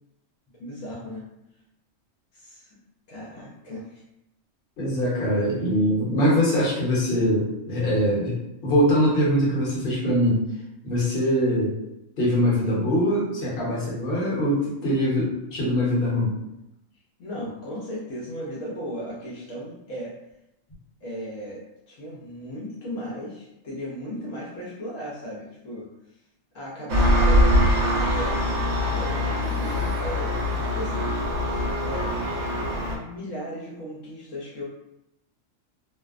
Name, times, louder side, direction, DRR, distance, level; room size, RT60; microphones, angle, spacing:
voice 1, 0.6-1.2 2.3-2.8 3.1-4.0 17.2-20.2 21.0-26.2 26.5-28.4 28.9-31.1 31.8-32.1 32.4-34.6, equal, 75° left, -6 dB, 1.0 m, -36 dB
voice 2, 4.8-8.3 8.6-10.4 10.8-11.7 12.2-16.3, equal, 50° left, -6 dB, 1.0 m, -22 dB
Engine, 26.9-33.0, left 1 dB, 65° right, 0.8 m, -23 dB
2.6 x 2.1 x 2.3 m, 0.86 s
omnidirectional pair, 1.4 m